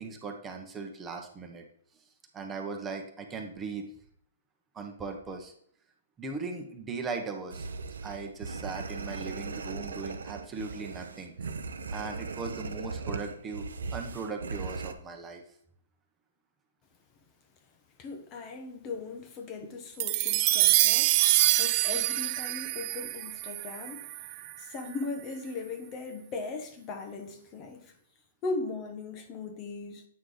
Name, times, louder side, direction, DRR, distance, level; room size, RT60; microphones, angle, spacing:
voice 1, 0.0-1.6 2.3-3.9 4.7-5.5 6.2-7.7 8.0-11.5 11.9-13.7 13.9-15.4, right 4 dB, 15° right, 1.0 m, -38 dB
sound 1, 7.5-14.9, right 4 dB, 85° right, 0.7 m, -38 dB
voice 2, 18.0-24.1 24.6-27.9 28.4-30.0, left 3 dB, 25° left, 0.9 m, -38 dB
sound 2, 20.0-24.5, right 17 dB, 35° right, 0.4 m, -26 dB
8.3 x 4.8 x 3.8 m
hypercardioid pair, 150°, 0 cm